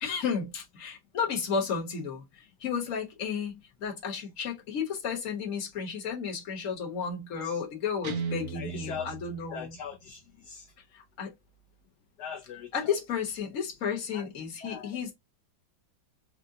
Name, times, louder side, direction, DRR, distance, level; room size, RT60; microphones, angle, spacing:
voice 1, 0.0-2.2 2.6-9.8 11.2-11.3 12.7-15.1, left 6 dB, 45° left, 1.3 m, -32 dB
Guitar, 8.0-10.1, right 6 dB, 55° right, 1.1 m, -38 dB
voice 2, 8.5-9.1 9.5-10.7 12.2-12.7 14.1-14.3 14.6-15.0, left 6 dB, 70° left, 1.1 m, -40 dB
4.7 x 2.2 x 2.6 m
omnidirectional pair, 2.1 m